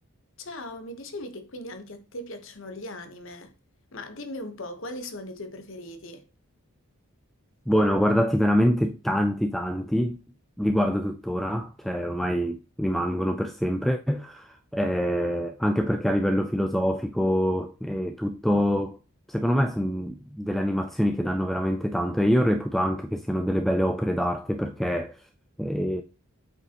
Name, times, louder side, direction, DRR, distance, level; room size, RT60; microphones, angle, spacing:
voice 1, 0.4-3.5 3.9-6.2, left 1 dB, 60° left, 1.1 m, -39 dB
voice 2, 7.7-10.2 10.6-19.0 19.3-25.2 25.6-26.0, equal, ahead, 0.3 m, -25 dB
7.9 x 4.9 x 2.9 m
head